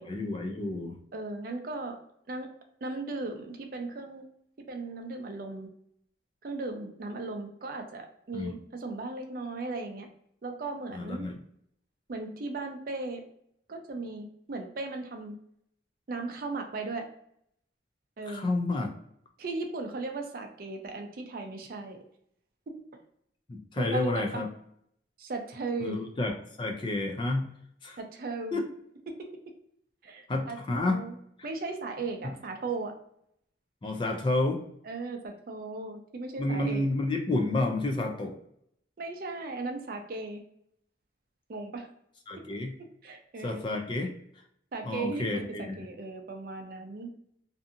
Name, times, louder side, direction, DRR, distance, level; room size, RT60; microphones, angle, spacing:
voice 1, 0.0-1.0 8.3-8.6 10.9-11.4 18.3-18.9 23.5-24.5 25.8-27.5 27.8-28.0 28.5-28.7 30.3-31.0 32.2-32.3 33.8-34.7 36.4-38.4 42.3-42.7 43.4-44.1 44.8-45.8, left 2 dB, 25° left, 3 dB, 0.3 m, -30 dB
voice 2, 1.1-2.0 2.3-2.5 2.8-4.2 4.7-5.7 6.4-10.1 10.4-11.3 12.1-13.2 13.7-15.3 16.1-17.1 18.2-18.5 19.4-22.0 23.8-24.4 25.2-26.0 28.0-28.6 29.1-29.3 30.0-31.2 31.4-32.9 34.9-36.8 39.0-40.4 41.5-41.9 43.0-43.7 44.7-47.1, right 3 dB, 50° right, 4 dB, 0.4 m, -37 dB
2.6 x 2.5 x 2.5 m, 0.71 s
head